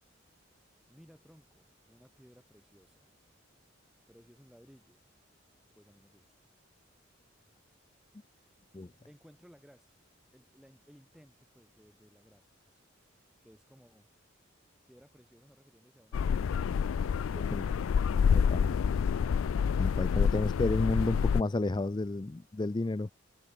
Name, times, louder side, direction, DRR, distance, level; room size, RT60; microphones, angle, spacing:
voice 1, 0.9-3.1 4.1-5.1 5.7-6.3 7.4-7.7 8.4-8.7 9.1-10.0 10.3-14.1 14.5-14.6 14.9-19.2, equal, 5° right, 5.3 m, -61 dB
sound 1, 16.1-21.4, left 6 dB, 85° left, 0.4 m, -28 dB
voice 2, 18.3-18.7 19.8-23.1, left 2 dB, 20° left, 0.4 m, -31 dB
head